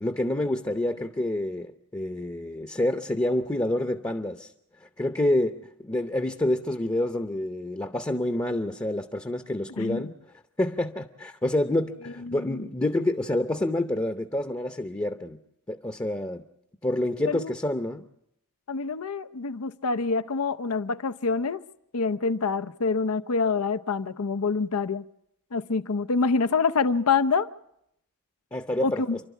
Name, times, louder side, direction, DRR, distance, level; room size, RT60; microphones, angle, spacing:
voice 1, 0.0-4.5 4.8-10.1 10.6-15.4 15.7-16.4 16.8-18.0 28.5-29.2, left 1 dB, 15° left, 0.7 m, -28 dB
voice 2, 9.8-10.1 12.2-12.7 17.2-17.5 18.7-21.6 21.9-25.1 25.5-27.5 28.8-29.2, left 4 dB, 80° left, 0.7 m, -26 dB
28.5 x 12.0 x 8.3 m
head